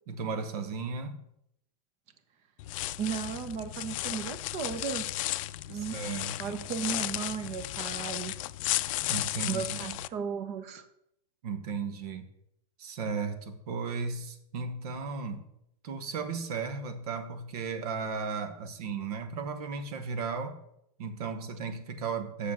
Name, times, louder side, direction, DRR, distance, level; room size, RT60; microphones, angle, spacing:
voice 1, 0.1-1.2 5.7-6.6 9.1-10.0 11.4-12.3 12.8-15.4 15.8-20.6 21.0-22.5, right 5 dB, 75° right, 9 dB, 1.4 m, -35 dB
sound 1, 2.6-10.1, left 16 dB, 60° left, 0.4 m, -34 dB
voice 2, 3.0-5.1 5.7-6.0 6.4-8.4 9.5-10.8, right 7 dB, 35° right, 11 dB, 1.0 m, -35 dB
7.5 x 6.7 x 6.4 m, 0.78 s
supercardioid pair, 155°, 20 cm